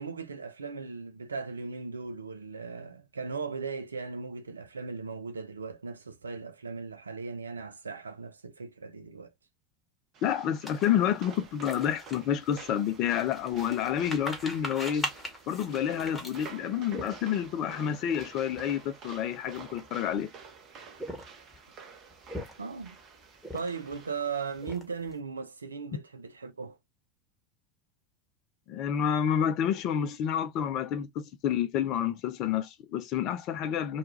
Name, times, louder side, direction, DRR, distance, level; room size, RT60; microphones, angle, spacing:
voice 1, 0.0-9.3 22.6-23.0 23.5-26.8, right 4 dB, 85° right, 0.3 m, -38 dB
sound 1, 10.1-24.8, right 5 dB, 45° right, 0.7 m, -50 dB
voice 2, 10.2-15.1 15.5-20.3 28.7-34.0, left 9 dB, 50° left, 0.5 m, -29 dB
sound 2, 10.7-17.6 18.1-18.3 18.5-18.7 19.4-20.2 20.9-21.6 22.1-22.9 23.4-24.0 24.3-25.1, left 1 dB, 10° left, 1.1 m, -40 dB
2.3 x 2.3 x 2.9 m
figure-of-eight pair, 80°, 0 cm